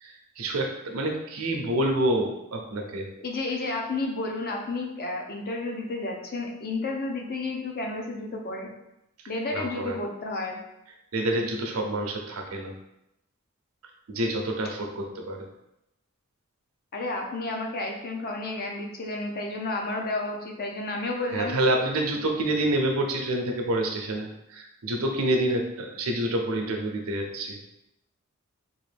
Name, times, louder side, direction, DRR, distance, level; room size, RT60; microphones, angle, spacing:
voice 1, 0.0-3.1 9.5-10.0 11.1-12.7 14.1-15.5 21.3-27.6, right 1 dB, 85° right, 2 dB, 0.6 m, -27 dB
voice 2, 3.2-8.7 9.3-10.6 16.9-21.6, left 2 dB, 45° left, 1 dB, 0.6 m, -31 dB
3.6 x 2.5 x 3.3 m, 0.85 s
head